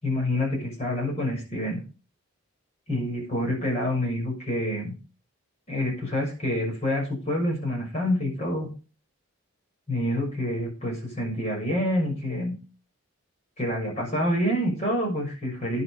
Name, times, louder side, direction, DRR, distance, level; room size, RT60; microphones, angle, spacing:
voice 1, 0.0-1.8 2.9-4.9 5.7-8.7 9.9-12.5 13.6-15.8, left 1 dB, 30° left, -1 dB, 6.4 m, -27 dB
11.0 x 8.6 x 5.3 m, 0.35 s
head